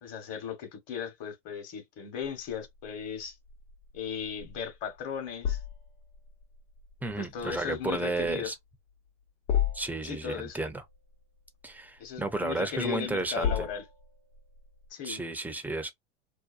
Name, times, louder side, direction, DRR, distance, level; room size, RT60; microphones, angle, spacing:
voice 1, 0.0-3.4 3.9-5.6 7.2-8.5 10.0-10.6 12.0-13.8 14.9-15.2, left 7 dB, 45° left, 1.2 m, -37 dB
sound 1, 2.4-14.9, left 9 dB, 75° left, 1.1 m, -37 dB
voice 2, 7.0-8.5 9.7-10.8 11.6-13.5 15.0-15.9, right 2 dB, 5° right, 0.5 m, -32 dB
2.7 x 2.2 x 2.5 m
hypercardioid pair, 95°, 34 cm